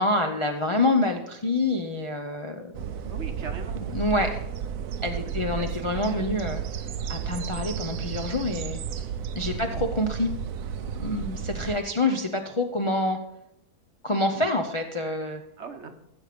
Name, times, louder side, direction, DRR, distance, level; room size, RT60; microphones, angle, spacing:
voice 1, 0.0-2.7 3.9-4.4 5.0-6.6 7.1-9.1 9.3-10.3 11.0-13.2 14.0-15.4, left 2 dB, 35° left, 3 dB, 0.5 m, -27 dB
sound 1, 2.7-11.8, right 8 dB, 70° right, 1.0 m, -33 dB
voice 2, 3.0-4.0 5.1-6.3 9.5-9.9 15.6-15.9, right 4 dB, 55° right, 7 dB, 1.1 m, -41 dB
15.0 x 6.4 x 5.1 m, 0.85 s
omnidirectional pair, 1.6 m